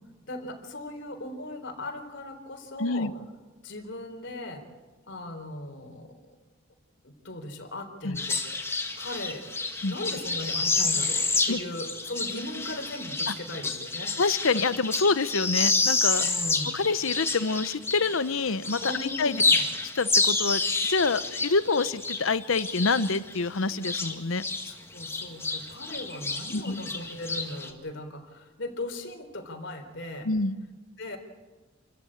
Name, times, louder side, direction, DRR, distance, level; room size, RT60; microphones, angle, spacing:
voice 1, 0.3-3.1 3.6-4.6 5.1-6.4 7.0-8.6 9.0-9.4 9.9-14.1 16.2-16.8 18.8-19.6 24.6-30.3 31.0-31.2, left 1 dB, 60° left, 4 dB, 4.0 m, -38 dB
voice 2, 2.8-3.1 8.0-8.2 9.8-9.9 11.5-11.6 14.2-16.2 16.7-19.4 19.9-24.4 26.5-26.8 30.2-30.6, left 4 dB, 75° left, 14 dB, 0.9 m, -26 dB
sound 1, 8.1-18.3 18.6-24.7 25.0-27.7, left 3 dB, 10° left, 1.9 m, -29 dB
28.5 x 14.0 x 8.8 m, 1.2 s
head